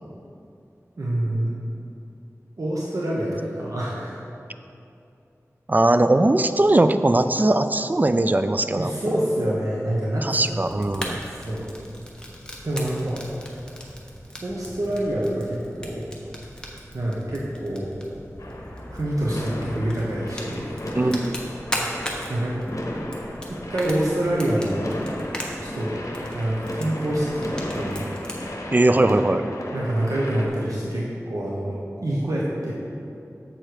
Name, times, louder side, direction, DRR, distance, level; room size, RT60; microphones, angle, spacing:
voice 1, 1.0-1.5 2.6-4.2 8.8-10.6 11.0-11.7 12.6-13.2 14.4-16.0 16.9-17.9 18.9-20.7 20.9-21.1 22.3-22.6 23.5-24.9 25.6-25.9 26.3-28.1 29.7-31.8 32.0-32.7, right 1 dB, 70° right, -5 dB, 1.1 m, -26 dB
voice 2, 5.7-8.9 10.2-11.2 20.9-21.4 28.7-29.4, right 2 dB, 30° right, 10 dB, 0.4 m, -20 dB
Fire, 10.5-28.5, equal, 15° left, 1.1 m, -38 dB
sound 1, 18.4-30.5, left 1 dB, 70° left, 1.0 m, -34 dB
7.5 x 6.7 x 4.7 m, 2.6 s
wide cardioid pair, 65°, 6 cm